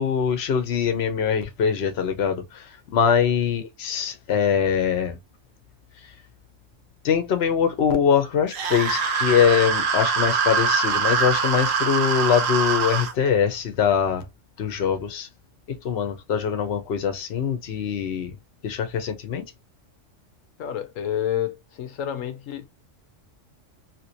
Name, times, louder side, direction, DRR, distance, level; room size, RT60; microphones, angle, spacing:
voice 1, 0.0-5.2 7.0-14.2 14.6-15.3 15.7-18.3 18.6-19.4, left 7 dB, 60° left, 1.0 m, -23 dB
sound 1, 8.5-13.1, right 5 dB, 85° right, 1.1 m, -23 dB
voice 2, 20.6-22.7, left 10 dB, 85° left, 1.1 m, -29 dB
3.0 x 2.8 x 2.7 m
omnidirectional pair, 1.3 m